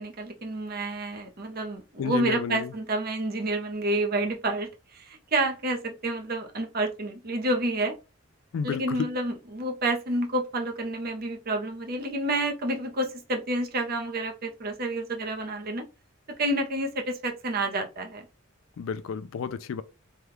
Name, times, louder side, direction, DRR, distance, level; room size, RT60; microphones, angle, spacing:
voice 1, 0.0-7.9 8.6-15.8 16.4-18.3, right 1 dB, 45° right, 0.7 m, -29 dB
voice 2, 2.0-2.7 8.5-9.1 18.8-19.8, left 6 dB, 70° left, 0.3 m, -31 dB
3.4 x 2.2 x 3.0 m
head